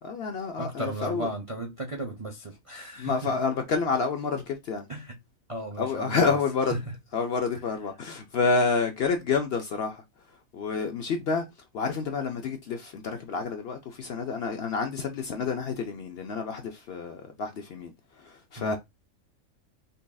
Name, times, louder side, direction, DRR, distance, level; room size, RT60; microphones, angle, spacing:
voice 1, 0.0-1.3 3.0-4.9 5.8-6.8 7.1-10.0 10.5-11.5 11.7-18.8, left 4 dB, 60° left, 0.7 m, -29 dB
voice 2, 0.6-3.4 4.9-5.2 5.5-6.4 6.7-6.8 18.6-18.8, right 1 dB, 40° right, 0.4 m, -35 dB
5.3 x 2.4 x 2.3 m
omnidirectional pair, 1.4 m